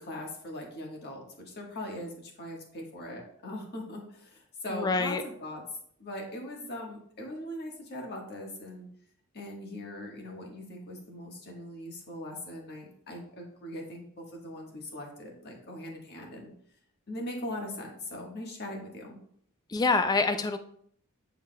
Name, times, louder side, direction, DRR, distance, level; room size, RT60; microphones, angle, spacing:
voice 1, 0.0-5.6 6.0-8.9 9.3-16.5 17.1-19.2, left 1 dB, 50° left, 0 dB, 1.4 m, -40 dB
voice 2, 4.7-5.2 19.7-20.6, left 3 dB, 20° left, 8 dB, 0.3 m, -26 dB
9.3 x 4.6 x 2.2 m, 0.64 s
head